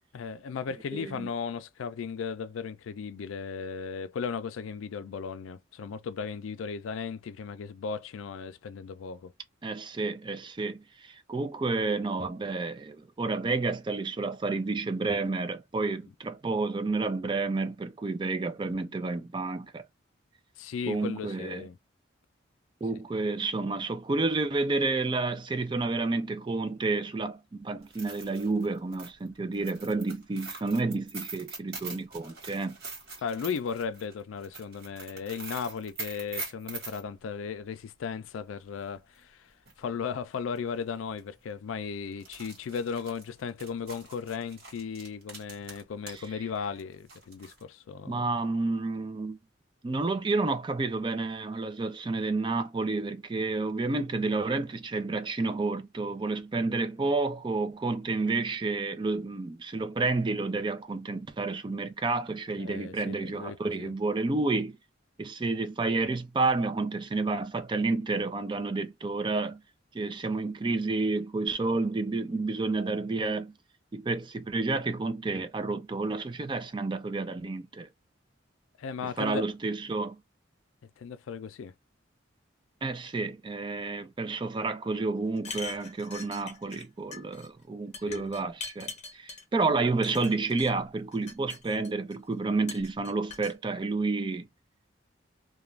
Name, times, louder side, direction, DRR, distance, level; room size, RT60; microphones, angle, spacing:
voice 1, 0.1-9.3 20.6-21.8 33.2-39.5 39.8-48.3 62.6-63.9 78.8-79.4 81.0-81.7 88.1-88.3, left 6 dB, 90° left, 0.4 m, -36 dB
voice 2, 0.9-1.3 9.6-19.8 20.9-21.7 22.8-32.8 46.1-46.2 48.1-49.4 49.8-64.8 65.2-69.6 69.9-73.5 73.9-77.9 79.0-80.2 82.8-94.5, right 3 dB, 25° right, 0.3 m, -30 dB
sound 1, 27.8-37.0 39.2-39.3 39.7-39.8 40.6-40.8 41.1-41.2 42.1-46.3 46.6-47.6, right 4 dB, 50° right, 1.4 m, -43 dB
sound 2, 85.4-86.9 87.1-87.5 87.9-89.4 90.0-90.7 91.1-92.1 92.7-93.5, left 5 dB, 35° left, 0.7 m, -42 dB
2.4 x 2.2 x 3.0 m
head